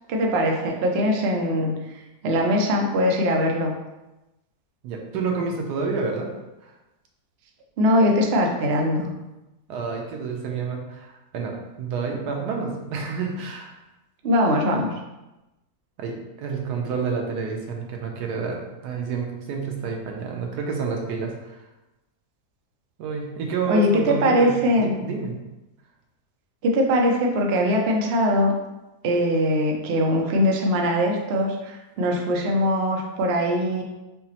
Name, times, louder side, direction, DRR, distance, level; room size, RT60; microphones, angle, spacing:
voice 1, 0.1-1.7 2.2-3.7 7.8-9.1 14.2-14.9 23.7-24.9 26.6-28.5 29.0-33.8, equal, 65° right, 1 dB, 0.6 m, -21 dB
voice 2, 4.8-6.3 9.7-11.5 11.8-13.8 16.0-21.6 23.0-25.3, right 4 dB, 85° right, 1 dB, 1.2 m, -29 dB
5.6 x 2.0 x 2.8 m, 1.0 s
omnidirectional pair, 1.7 m